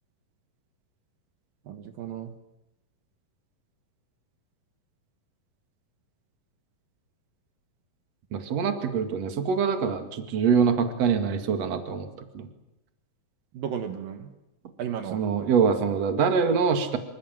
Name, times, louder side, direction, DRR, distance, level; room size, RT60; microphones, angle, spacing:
voice 1, 1.7-2.3 13.5-14.3 14.8-15.5, right 8 dB, 70° right, 7 dB, 3.1 m, -34 dB
voice 2, 8.3-12.1 12.3-12.5 15.1-17.0, right 6 dB, 50° right, 7 dB, 3.1 m, -24 dB
26.5 x 25.5 x 7.6 m, 0.90 s
omnidirectional pair, 4.2 m